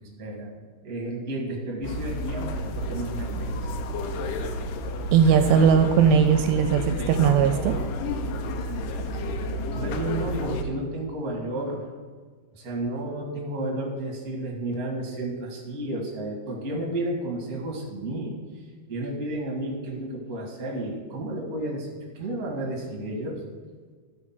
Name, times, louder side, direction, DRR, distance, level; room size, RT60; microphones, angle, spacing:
voice 1, 0.2-0.5 0.8-3.7 9.1-9.2 9.7-11.8 12.5-18.4 18.9-21.9 22.1-23.4, right 1 dB, 40° right, -1 dB, 1.4 m, -32 dB
sound 1, 1.8-10.6, left 1 dB, 85° left, 1.9 m, -31 dB
voice 2, 5.1-7.8, right 7 dB, 80° right, 8 dB, 2.3 m, -19 dB
12.5 x 4.3 x 5.8 m, 1.5 s
omnidirectional pair, 4.4 m